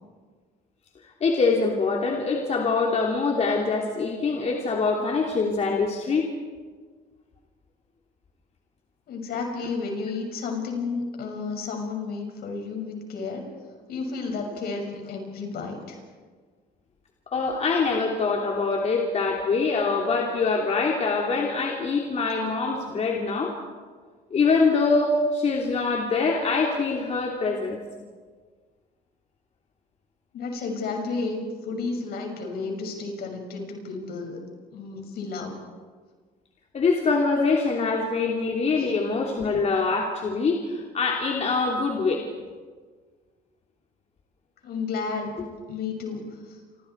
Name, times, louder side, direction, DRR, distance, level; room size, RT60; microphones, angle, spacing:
voice 1, 1.2-6.3 17.3-23.5 24.3-27.8 36.7-42.3, left 4 dB, 40° left, 0 dB, 3.1 m, -24 dB
voice 2, 9.1-13.5 13.9-16.0 30.3-34.4 34.7-35.6 38.7-38.9 44.6-45.4 45.7-46.6, left 4 dB, 65° left, 2 dB, 6.5 m, -32 dB
29.5 x 26.5 x 4.7 m, 1.5 s
cardioid pair, 110°, 17 cm